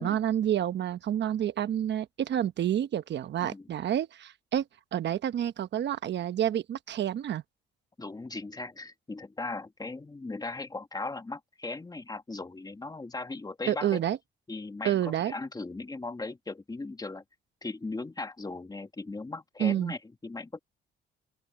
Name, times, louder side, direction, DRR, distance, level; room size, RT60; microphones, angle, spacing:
voice 1, 0.0-4.6 4.9-7.4 13.7-14.2 14.8-15.3 19.6-19.9, right 10 dB, 60° right, 1.0 m, -29 dB
voice 2, 8.0-14.0 14.5-17.2 17.6-20.6, left 3 dB, 20° left, 2.0 m, -38 dB
open air
cardioid pair, 90°, 20 cm